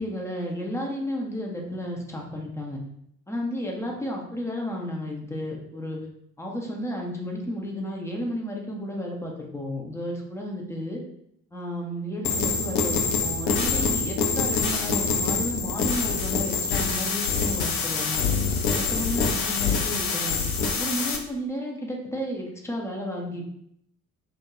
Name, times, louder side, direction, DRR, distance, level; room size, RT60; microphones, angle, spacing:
voice 1, 0.0-2.8 3.3-6.0 6.4-11.0 11.5-18.3 18.7-20.4 20.7-23.5, equal, 5° left, -1 dB, 0.4 m, -32 dB
sound 1, 12.2-21.2, left 5 dB, 60° left, 0.6 m, -25 dB
2.4 x 2.1 x 2.9 m, 0.73 s
figure-of-eight pair, 50°, 46 cm